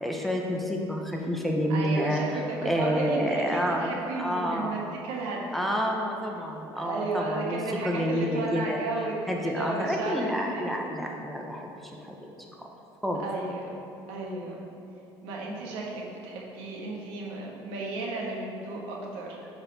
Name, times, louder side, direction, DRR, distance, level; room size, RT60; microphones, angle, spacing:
voice 1, 0.0-2.2 2.6-5.0 5.5-8.8 9.3-11.9 12.2-12.3 13.0-13.2, equal, ahead, 0 dB, 0.6 m, -29 dB
voice 2, 1.7-5.7 6.7-10.8 13.2-13.6 14.1-14.6 15.2-19.4, right 2 dB, 85° right, -2 dB, 1.3 m, -34 dB
9.7 x 4.2 x 4.0 m, 2.8 s
cardioid pair, 145°, 9 cm